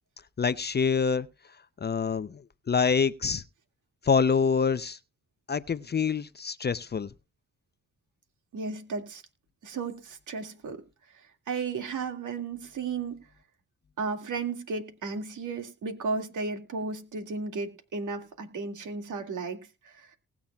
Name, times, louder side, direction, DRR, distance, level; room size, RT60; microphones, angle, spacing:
voice 1, 0.4-1.3 1.8-2.4 2.7-3.4 4.0-5.0 5.5-7.1, left 6 dB, 30° left, 0.6 m, -26 dB
voice 2, 8.5-9.2 9.6-10.8 11.1-13.2 14.0-20.1, right 4 dB, 65° right, 2.2 m, -34 dB
19.5 x 7.2 x 2.3 m
supercardioid pair, 60°, 33 cm